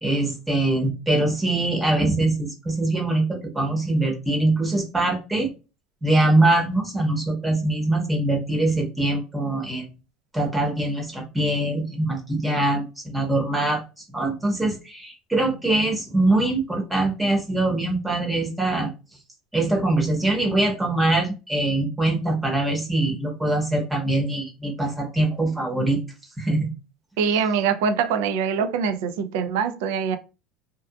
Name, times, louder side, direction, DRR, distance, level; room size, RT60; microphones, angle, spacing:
voice 1, 0.0-5.5 6.0-9.9 10.3-13.8 14.1-18.9 19.5-26.0 26.4-26.7, right 2 dB, 10° right, 0.8 m, -23 dB
voice 2, 27.2-30.2, right 6 dB, 80° right, 0.4 m, -23 dB
2.7 x 2.3 x 2.3 m
cardioid pair, 135°, 0 cm